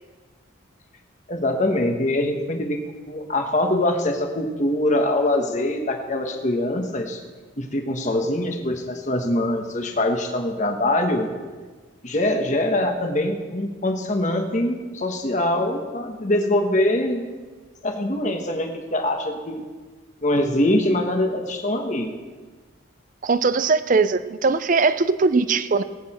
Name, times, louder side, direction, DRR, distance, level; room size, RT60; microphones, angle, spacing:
voice 1, 1.3-7.2 7.6-11.3 12.0-17.2 17.8-19.6 20.2-22.1, left 1 dB, 35° left, 4 dB, 1.3 m, -23 dB
voice 2, 23.2-25.8, right 4 dB, 40° right, 14 dB, 0.5 m, -20 dB
19.5 x 8.7 x 4.4 m, 1.4 s
head